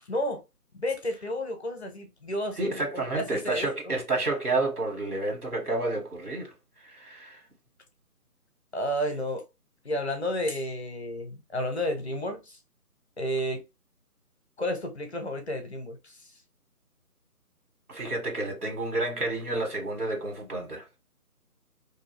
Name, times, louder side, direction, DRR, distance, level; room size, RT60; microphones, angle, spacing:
voice 1, 0.1-0.4 0.7-3.9 8.7-9.4 9.8-12.6 13.2-13.6 14.6-16.3, equal, 45° left, 0.6 m, -31 dB
voice 2, 2.6-6.5 6.8-7.4 17.9-20.8, right 2 dB, 70° right, 1.6 m, -30 dB
2.7 x 2.3 x 2.9 m
figure-of-eight pair, 160°, 47 cm